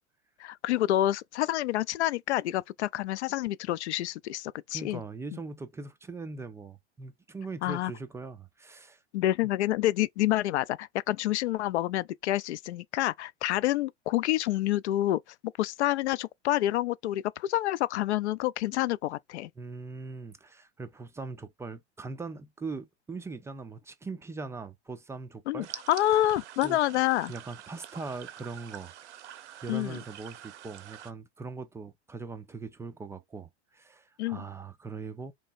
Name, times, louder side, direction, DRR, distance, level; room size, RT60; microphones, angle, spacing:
voice 1, 0.4-5.0 5.3-5.4 7.6-7.9 9.1-15.2 15.6-19.5 25.5-27.3 29.7-30.0 34.2-34.4, left 14 dB, 70° left, 0.5 m, -28 dB
voice 2, 4.7-9.0 19.6-25.7 26.6-26.8 27.3-28.9 29.6-35.3, right 4 dB, 10° right, 0.3 m, -41 dB
sound 1, 25.6-31.1, right 11 dB, 75° right, 0.7 m, -46 dB
3.3 x 3.1 x 4.0 m
hypercardioid pair, 95°, 35 cm